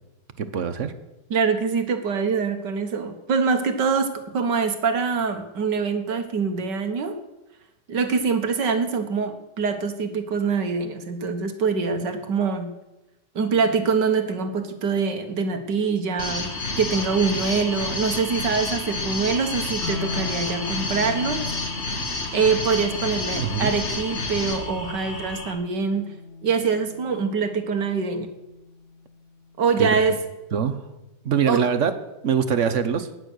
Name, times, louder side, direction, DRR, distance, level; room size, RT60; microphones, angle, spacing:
voice 1, 0.4-0.9 23.3-23.7 29.8-30.0 30.5-30.8 31.2-31.9 32.2-33.1, right 7 dB, 50° right, 11 dB, 1.1 m, -23 dB
voice 2, 1.3-7.2 7.9-12.7 13.4-16.5 16.8-21.4 22.3-26.1 26.4-28.3 29.6-30.2 31.4-31.6, right 5 dB, 75° right, 7 dB, 2.0 m, -24 dB
sound 1, 16.2-25.5, left 2 dB, 40° left, 2.2 m, -30 dB
sound 2, 19.8-29.8, left 4 dB, 80° left, 4.1 m, -39 dB
15.5 x 10.0 x 6.4 m, 0.98 s
omnidirectional pair, 1.9 m